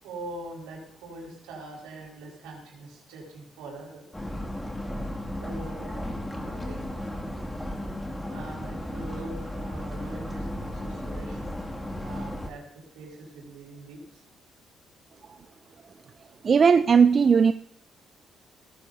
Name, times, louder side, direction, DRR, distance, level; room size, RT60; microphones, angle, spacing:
voice 1, 0.0-4.0 5.4-6.1 6.3-7.3 8.3-11.4 12.0-14.2, right 2 dB, 75° right, -2 dB, 5.1 m, -42 dB
sound 1, 4.1-12.5, left 1 dB, 15° left, 2.4 m, -34 dB
voice 2, 16.4-17.5, right 6 dB, 45° right, 13 dB, 0.5 m, -17 dB
18.0 x 14.5 x 2.8 m, 0.70 s
hypercardioid pair, 45°, 0 cm